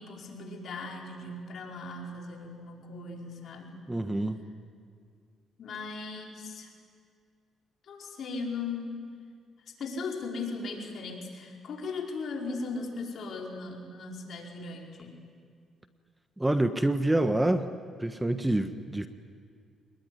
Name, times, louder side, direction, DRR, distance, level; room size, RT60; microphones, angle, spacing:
voice 1, 0.0-3.9 5.6-6.7 7.9-9.1 9.7-15.2, left 3 dB, 60° left, 0 dB, 5.1 m, -38 dB
voice 2, 3.9-4.4 16.4-17.7 18.0-19.1, right 1 dB, 10° right, 9 dB, 1.3 m, -26 dB
26.0 x 21.5 x 9.9 m, 2.2 s
cardioid pair, 90°, 0 cm